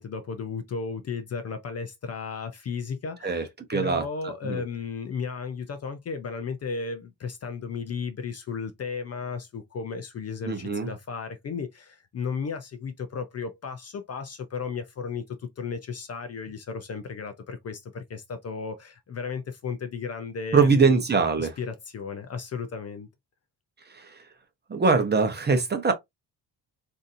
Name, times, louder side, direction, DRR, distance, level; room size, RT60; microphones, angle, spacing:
voice 1, 0.0-21.0 21.4-23.1, left 5 dB, 35° left, 0.4 m, -34 dB
voice 2, 3.2-4.6 10.4-10.9 20.5-21.6 23.9-24.2 24.7-25.9, right 4 dB, 25° right, 0.6 m, -23 dB
3.9 x 2.7 x 2.5 m
cardioid pair, 155°, 43 cm